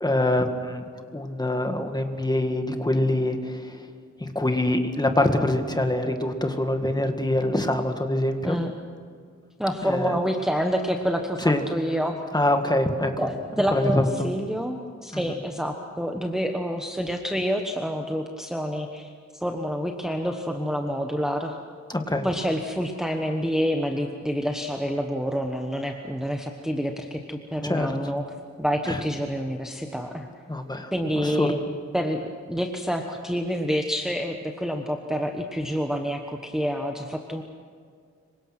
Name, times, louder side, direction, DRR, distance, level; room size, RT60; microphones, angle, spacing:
voice 1, 0.0-3.9 4.2-8.6 9.8-10.1 11.5-11.6 12.3-13.3 13.7-14.3 15.1-15.4 21.9-22.3 27.6-28.0 28.9-29.0 30.5-31.5, left 1 dB, 15° left, 5 dB, 1.9 m, -25 dB
voice 2, 9.6-12.2 13.2-21.6 22.2-28.2 28.6-30.3 30.9-31.6 31.9-37.4, equal, ahead, 3 dB, 1.2 m, -28 dB
26.5 x 24.0 x 6.0 m, 2.1 s
wide cardioid pair, 135°, 29 cm